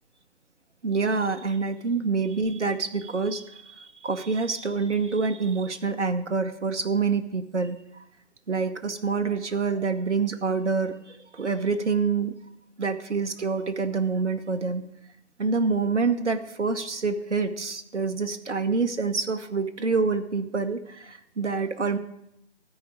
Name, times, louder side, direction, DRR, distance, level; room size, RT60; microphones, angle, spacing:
voice 1, 0.8-7.8 8.5-12.3 12.8-14.8 15.4-22.0, right 4 dB, 80° right, 8 dB, 1.0 m, -27 dB
14.0 x 4.9 x 8.3 m, 0.79 s
figure-of-eight pair, 145°, 34 cm